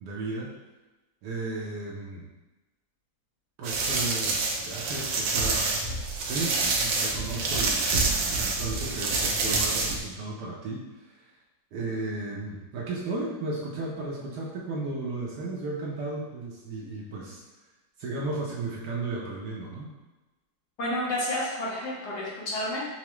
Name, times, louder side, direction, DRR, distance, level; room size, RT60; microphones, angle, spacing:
voice 1, 0.0-0.5 1.2-2.2 3.6-5.7 6.2-10.8 11.1-11.2 11.7-17.4 18.0-19.9, right 3 dB, 70° right, -3 dB, 1.1 m, -34 dB
sound 1, 3.6-10.0, right 3 dB, 85° right, 1.4 m, -27 dB
voice 2, 20.8-22.8, left 1 dB, 60° left, -6 dB, 1.4 m, -30 dB
5.7 x 2.0 x 3.0 m, 1.1 s
omnidirectional pair, 2.1 m